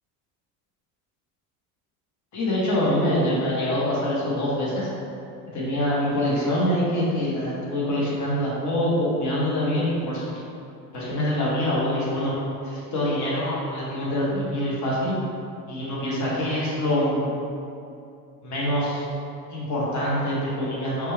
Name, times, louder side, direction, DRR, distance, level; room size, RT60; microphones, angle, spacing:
voice 1, 2.3-4.9 5.5-10.4 10.9-12.3 12.6-15.1 15.7-17.3 18.4-19.0 19.5-21.1, left 1 dB, 40° left, -6 dB, 1.1 m, -25 dB
4.9 x 2.3 x 3.1 m, 2.6 s
supercardioid pair, 110°, 44 cm